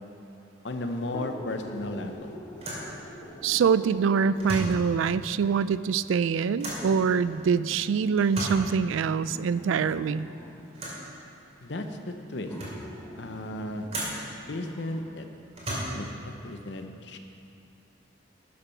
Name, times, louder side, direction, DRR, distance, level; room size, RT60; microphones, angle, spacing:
voice 1, 0.6-2.4 11.6-12.5 13.2-13.9 14.5-15.3 15.9-17.2, left 1 dB, 60° left, 6 dB, 0.8 m, -35 dB
sound 1, 1.1-4.7 5.6-5.7 6.8-10.7 11.7-11.8 12.5-15.1 15.6-15.7, equal, 10° left, 0.9 m, -45 dB
sound 2, 2.6-2.9 4.3-4.9 6.6-6.9 8.2-8.7 10.7-11.1 11.8-11.9 12.3-12.9 13.9-14.3 15.5-16.2, right 1 dB, 30° right, 2.7 m, -35 dB
voice 2, 3.4-10.3, right 6 dB, 80° right, 16 dB, 0.3 m, -24 dB
12.0 x 7.0 x 5.7 m, 2.7 s
head